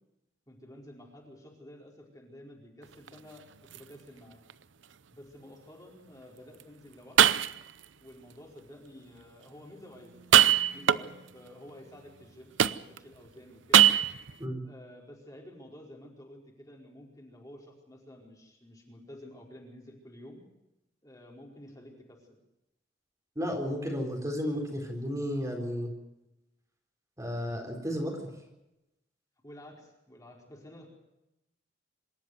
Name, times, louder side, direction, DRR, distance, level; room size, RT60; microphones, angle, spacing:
voice 1, 0.5-3.5 3.7-4.4 5.1-7.4 8.0-13.9 14.6-20.4 21.0-22.4 29.4-30.9, left 1 dB, 20° left, -1 dB, 4.6 m, -51 dB
sound 1, 2.8-3.2 3.7-3.8 4.5-4.6 6.6-6.7 7.2-7.8 10.2-11.3 12.6-13.1 13.7-14.3, right 10 dB, 80° right, 0.7 m, -22 dB
voice 2, 23.4-25.9 27.2-28.2, equal, 20° right, 2 dB, 4.2 m, -33 dB
26.0 x 13.5 x 7.9 m, 0.91 s
head